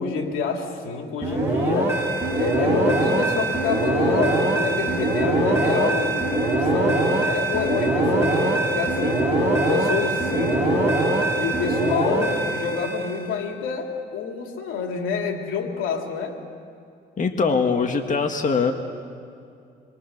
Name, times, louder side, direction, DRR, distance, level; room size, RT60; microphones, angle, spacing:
voice 1, 0.0-2.0 2.4-11.0 11.4-16.4, left 5 dB, 85° left, 2 dB, 3.0 m, -28 dB
sound 1, 1.2-13.3, right 1 dB, 10° right, 7.8 m, -22 dB
voice 2, 17.2-18.7, left 5 dB, 40° left, 4 dB, 1.8 m, -22 dB
27.0 x 23.0 x 6.7 m, 2.5 s
cardioid pair, 90°, 20 cm